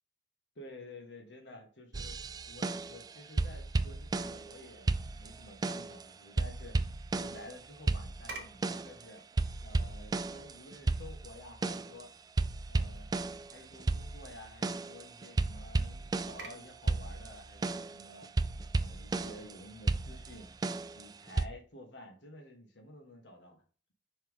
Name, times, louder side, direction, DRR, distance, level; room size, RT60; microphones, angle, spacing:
voice 1, 0.6-2.2 2.5-6.8 7.1-9.2 9.6-12.1 12.7-13.1 13.5-18.3 18.7-20.6 20.9-23.6, left 1 dB, 70° left, 2 dB, 1.8 m, -51 dB
sound 1, 1.9-3.1 3.4-4.6 4.9-6.0 6.4-7.6 7.9-9.0 9.4-12.0 12.4-16.5 16.9-19.5 19.9-21.5, right 2 dB, 20° right, 0.3 m, -33 dB
sound 2, 8.1-20.2, right 3 dB, 65° right, 1.6 m, -55 dB
5.8 x 4.5 x 3.7 m, 0.38 s
head